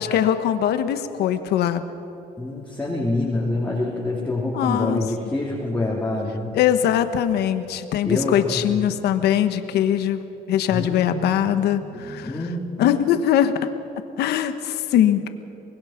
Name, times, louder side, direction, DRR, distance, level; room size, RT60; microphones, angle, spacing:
voice 1, 0.0-1.8 4.5-5.0 6.5-12.3 12.8-13.6 14.2-15.3, left 10 dB, 75° left, 10 dB, 1.3 m, -21 dB
voice 2, 2.4-6.6 8.0-9.0 10.7-12.9, left 2 dB, 10° left, -5 dB, 3.2 m, -27 dB
24.5 x 20.0 x 5.9 m, 2.8 s
cardioid pair, 110°, 17 cm